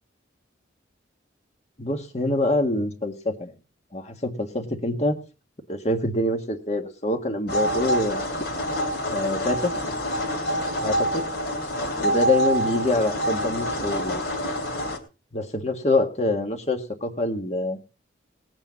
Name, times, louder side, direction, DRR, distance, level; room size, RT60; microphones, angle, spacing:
voice 1, 1.8-3.5 3.9-5.2 5.7-8.2 9.1-9.7 10.8-11.2 12.0-14.2 15.3-17.8, left 2 dB, 35° left, 5 dB, 1.8 m, -25 dB
sound 1, 7.5-15.0, equal, 60° left, 2.8 m, -26 dB
19.5 x 8.9 x 4.1 m, 0.33 s
head